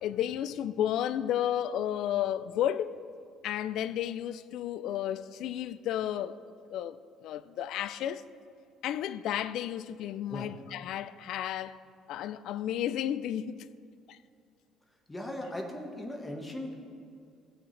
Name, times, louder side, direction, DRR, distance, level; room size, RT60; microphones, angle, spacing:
voice 1, 0.0-3.0 3.4-6.4 6.7-7.0 7.2-8.2 8.8-11.8 12.1-13.6 14.1-14.2, left 11 dB, 65° left, 0.3 m, -32 dB
voice 2, 15.1-16.7, left 1 dB, 15° left, 1.4 m, -38 dB
16.0 x 8.9 x 3.3 m
cardioid pair, 120°, 0 cm